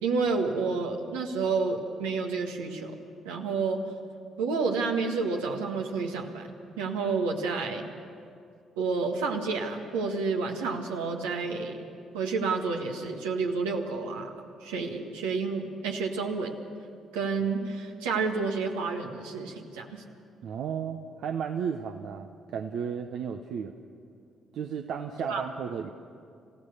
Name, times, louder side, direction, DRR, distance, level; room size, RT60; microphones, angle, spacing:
voice 1, 0.0-3.0 3.2-3.9 4.4-6.5 6.8-7.8 8.8-11.8 12.1-14.3 14.6-16.6 17.1-20.0 25.3-25.5, right 4 dB, 85° right, 1 dB, 1.8 m, -30 dB
voice 2, 20.4-23.7 24.5-25.9, right 7 dB, 65° right, 5 dB, 0.9 m, -34 dB
28.0 x 16.0 x 6.7 m, 2.4 s
hypercardioid pair, 50°, 0 cm